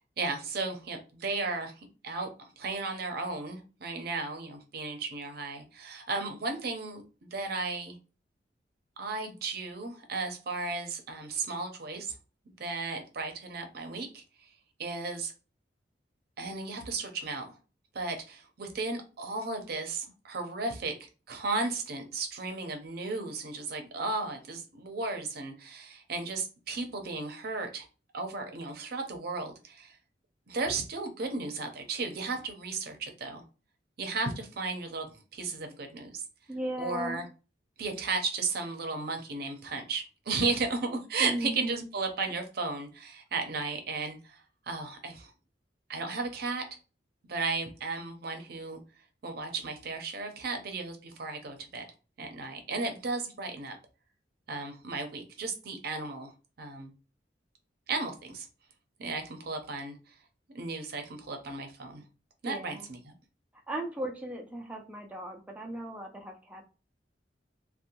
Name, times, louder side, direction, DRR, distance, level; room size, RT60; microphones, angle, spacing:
voice 1, 0.2-8.0 9.0-12.1 12.6-14.2 14.8-15.3 16.4-17.6 17.9-27.9 28.1-30.0 30.5-33.4 34.0-36.2 36.8-37.3 37.8-45.3 45.9-46.6 47.2-48.8 49.2-51.9 52.2-53.8 54.5-56.3 56.6-56.9 57.9-58.5 59.0-60.0 60.5-62.0 62.4-63.1, right 3 dB, 60° right, 5 dB, 0.6 m, -35 dB
voice 2, 36.5-37.2 41.2-41.8 62.5-62.9 63.7-66.7, right 1 dB, 10° right, 1 dB, 0.3 m, -37 dB
2.6 x 2.1 x 2.8 m, 0.34 s
head